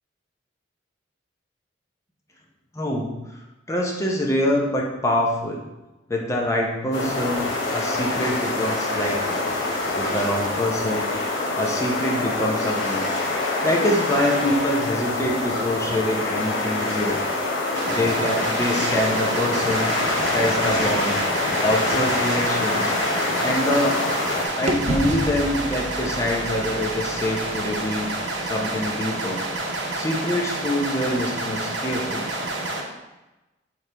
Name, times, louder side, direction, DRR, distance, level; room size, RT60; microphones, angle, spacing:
voice 1, 2.7-3.1 3.7-5.6 6.1-7.4 7.7-9.5 9.9-11.1 11.5-13.1 13.6-17.2 17.9-19.9 20.3-21.2 21.6-23.0 23.4-24.0 24.5-28.1 28.4-29.4 29.9-32.3, left 1 dB, 15° left, -1 dB, 0.7 m, -25 dB
sound 1, 6.9-24.5, left 2 dB, 80° left, 0.9 m, -25 dB
sound 2, 17.7-32.8, right 2 dB, 70° right, 0.8 m, -29 dB
sound 3, 22.9-24.3 24.7-28.6, right 1 dB, 40° right, 0.5 m, -33 dB
4.6 x 3.3 x 3.3 m, 1.0 s
head